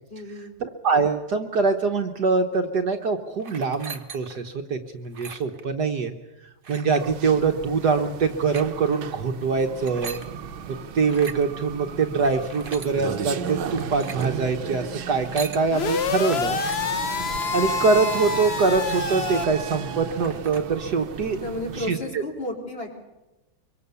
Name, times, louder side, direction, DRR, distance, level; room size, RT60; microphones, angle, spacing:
voice 1, 0.1-0.6 21.4-23.0, left 1 dB, 30° left, 0 dB, 4.7 m, -33 dB
voice 2, 0.6-6.1 6.7-10.2 10.7-16.6 17.5-21.4 21.8-22.0, right 4 dB, 55° right, 5 dB, 1.7 m, -24 dB
sound 1, 3.4-4.5 5.0-5.6 6.6-7.1 8.3-8.7 9.7-10.3 11.0-11.4 12.2-12.9 13.7-14.3 15.1-15.6 16.3-16.8 17.3-17.6 18.2-18.3 18.5-19.4 19.8-19.9 20.1-20.6, right 5 dB, 35° right, 1.1 m, -40 dB
sound 2, 7.0-21.9, right 6 dB, 80° right, 1.8 m, -35 dB
sound 3, 15.7-19.5, left 6 dB, 50° left, 0.8 m, -27 dB
24.0 x 23.5 x 7.0 m, 1.0 s
omnidirectional pair, 2.2 m